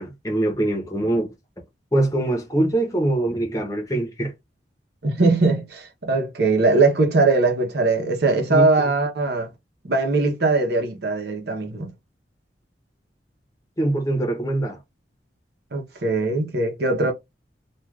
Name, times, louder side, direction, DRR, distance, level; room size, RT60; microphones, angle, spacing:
voice 1, 0.0-1.3 1.9-4.3 8.5-8.9 13.8-14.8, right 1 dB, 20° left, 0.8 m, -23 dB
voice 2, 5.0-9.5 9.8-11.9 15.7-17.1, right 3 dB, 60° right, 0.8 m, -20 dB
2.4 x 2.4 x 3.2 m
head